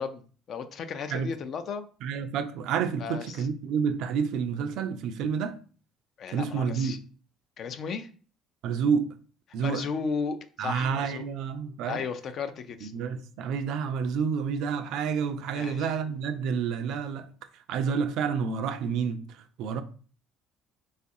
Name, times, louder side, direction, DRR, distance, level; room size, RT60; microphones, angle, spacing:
voice 1, 0.0-1.9 3.0-3.4 6.2-7.0 7.6-8.1 9.6-11.2 11.9-12.9 15.5-15.9, left 5 dB, 55° left, 0.4 m, -34 dB
voice 2, 2.0-5.6 6.3-7.0 8.6-9.2 9.5-9.9 10.6-12.0 12.8-17.3 17.7-19.8, right 6 dB, 70° right, 0.3 m, -29 dB
3.1 x 2.4 x 2.7 m
hypercardioid pair, 65°, 0 cm